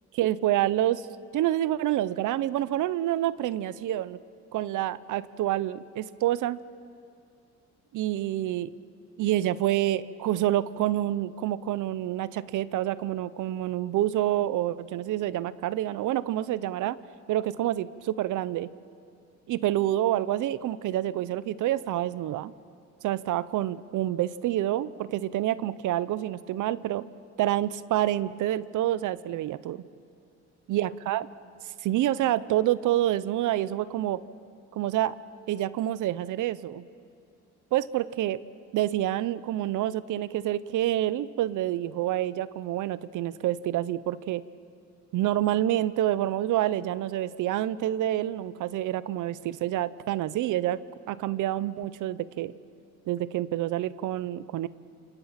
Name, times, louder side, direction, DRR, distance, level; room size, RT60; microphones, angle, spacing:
voice 1, 0.2-1.1 1.3-4.2 4.5-6.6 7.9-8.7 9.2-17.0 17.3-18.7 19.5-22.5 23.0-27.0 27.4-29.8 30.7-31.3 31.8-34.2 34.7-35.1 35.5-36.8 37.7-38.4 38.7-44.4 45.1-50.8 51.1-52.5 53.1-54.7, right 13 dB, 80° right, 16 dB, 0.8 m, -27 dB
28.0 x 28.0 x 5.9 m, 2.4 s
cardioid pair, 90°, 30 cm